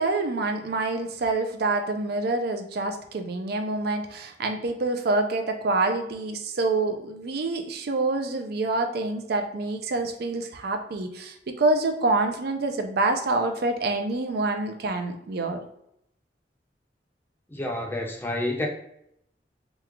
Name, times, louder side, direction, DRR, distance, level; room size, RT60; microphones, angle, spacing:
voice 1, 0.0-15.6, right 2 dB, 60° right, 0.4 m, -26 dB
voice 2, 17.5-18.7, left 1 dB, 10° left, 0.4 m, -29 dB
3.0 x 2.3 x 3.5 m
head